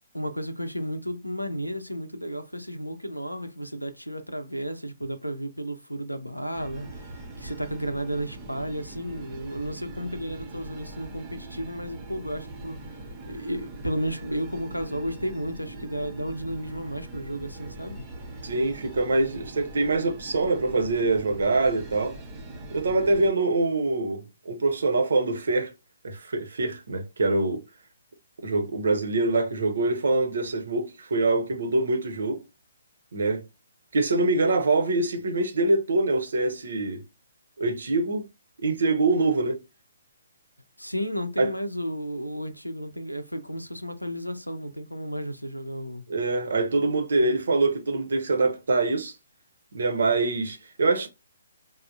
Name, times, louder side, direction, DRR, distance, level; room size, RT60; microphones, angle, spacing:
voice 1, 0.1-12.8 13.3-18.1 40.8-46.0, equal, 90° left, 0.5 m, -33 dB
sound 1, 6.5-23.3, right 2 dB, 20° right, 0.5 m, -41 dB
voice 2, 18.4-22.2 22.7-25.7 26.0-27.6 28.4-32.4 33.1-33.4 33.9-37.0 37.6-38.3 38.6-39.6 41.4-41.5 46.1-49.1 49.7-51.1, right 2 dB, 55° right, 0.7 m, -24 dB
3.3 x 2.0 x 2.6 m
figure-of-eight pair, 130°, 0 cm